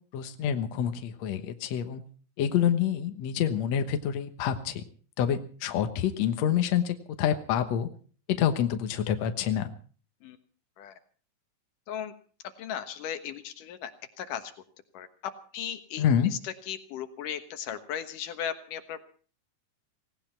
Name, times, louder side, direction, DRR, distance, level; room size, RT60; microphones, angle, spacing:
voice 1, 0.1-2.0 2.4-4.8 5.2-7.9 8.3-9.7 16.0-16.3, left 9 dB, 65° left, 8 dB, 2.2 m, -27 dB
voice 2, 12.6-13.9 14.2-14.5 14.9-16.0 16.3-19.0, left 9 dB, 85° left, 9 dB, 2.9 m, -36 dB
18.0 x 17.5 x 4.5 m, 0.42 s
omnidirectional pair, 3.6 m